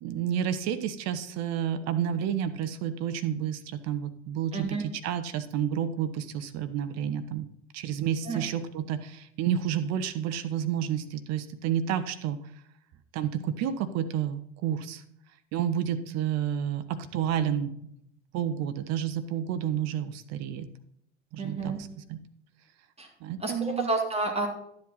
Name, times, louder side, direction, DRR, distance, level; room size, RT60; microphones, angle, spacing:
voice 1, 0.0-7.5 7.7-12.4 13.1-15.0 15.5-17.7 18.3-20.7 21.3-21.7 22.1-22.2 23.2-23.9, right 9 dB, 45° right, 10 dB, 1.0 m, -30 dB
voice 2, 4.5-4.8 8.3-8.4 21.4-21.8 23.0-23.1 23.4-24.5, right 3 dB, 15° right, 2 dB, 2.3 m, -30 dB
11.5 x 7.9 x 4.2 m, 0.71 s
figure-of-eight pair, 70°, 36 cm